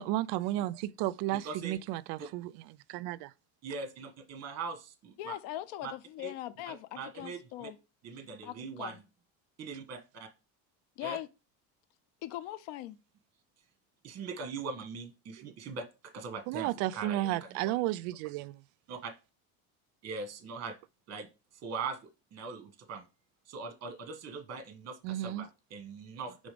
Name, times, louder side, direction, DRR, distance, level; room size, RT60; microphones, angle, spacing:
voice 1, 0.0-2.5 2.9-3.3 16.5-18.6 25.0-25.5, right 15 dB, 75° right, 0.5 m, -33 dB
voice 2, 1.4-1.8 3.6-5.4 5.8-5.9 6.2-6.3 6.7-7.7 8.0-9.0 9.6-10.0 11.0-11.2 14.0-17.7 18.9-19.1 20.0-20.7 21.1-21.3 21.6-22.0 22.3-23.0 23.5-26.4, right 4 dB, 40° right, 1.3 m, -41 dB
voice 3, 5.2-7.8 8.4-9.0 11.0-11.3 12.2-13.0, left 14 dB, 75° left, 0.8 m, -40 dB
5.0 x 3.6 x 5.2 m
cardioid pair, 135°, 41 cm